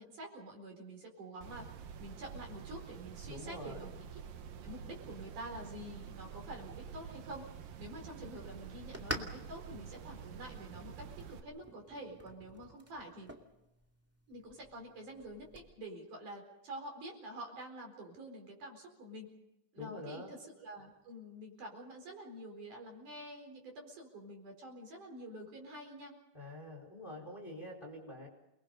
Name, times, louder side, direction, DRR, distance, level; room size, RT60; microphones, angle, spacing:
voice 1, 0.0-1.7 2.0-3.9 4.6-7.5 7.8-13.3 14.3-19.3 19.7-26.1, right 1 dB, 50° right, 2 dB, 5.7 m, -48 dB
sound 1, 1.4-11.4, right 7 dB, 65° right, 2.9 m, -48 dB
voice 2, 3.3-3.9 19.8-20.3 26.3-28.3, left 1 dB, 10° left, 1 dB, 4.1 m, -46 dB
sound 2, 8.8-15.7, equal, 5° right, 1.2 m, -49 dB
29.5 x 20.5 x 5.4 m, 0.91 s
omnidirectional pair, 4.6 m